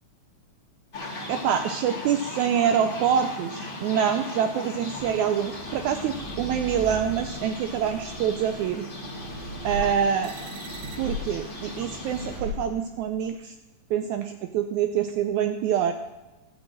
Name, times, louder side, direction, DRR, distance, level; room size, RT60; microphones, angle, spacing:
sound 1, 0.9-12.4, left 2 dB, 25° left, 1.2 m, -38 dB
voice 1, 1.3-8.8 9.6-10.3 11.0-13.5 13.9-15.9, right 8 dB, 80° right, 7 dB, 1.8 m, -26 dB
sound 2, 5.0-13.3, equal, 55° right, 1.8 m, -39 dB
13.5 x 6.2 x 7.6 m, 1.1 s
omnidirectional pair, 3.7 m